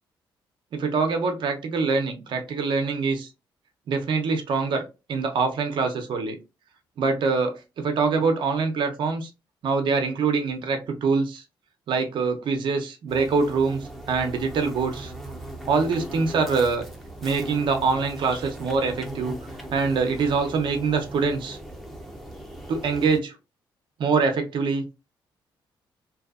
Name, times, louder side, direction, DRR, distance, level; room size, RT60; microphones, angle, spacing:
voice 1, 0.7-3.3 3.9-4.8 5.1-6.4 7.0-9.3 9.6-11.4 11.9-15.1 15.7-16.8 17.2-21.6 22.7-23.4 24.0-24.9, right 4 dB, 65° right, 5 dB, 0.6 m, -24 dB
sound 1, 13.1-23.2, right 1 dB, ahead, 0.7 m, -39 dB
2.6 x 2.5 x 2.4 m, 0.27 s
cardioid pair, 95°, 9 cm